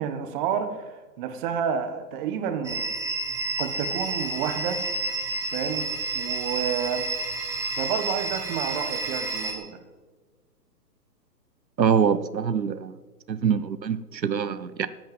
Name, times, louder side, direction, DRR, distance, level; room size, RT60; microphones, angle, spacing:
voice 1, 0.0-2.9 3.6-4.8 5.5-7.1 7.8-9.8, right 8 dB, 30° right, 8 dB, 1.5 m, -30 dB
sound 1, 2.6-9.5, right 3 dB, 5° right, 1.3 m, -30 dB
voice 2, 11.8-12.9 13.3-14.9, right 7 dB, 90° right, 14 dB, 0.9 m, -24 dB
13.5 x 9.2 x 7.6 m, 1.3 s
hypercardioid pair, 135°, 49 cm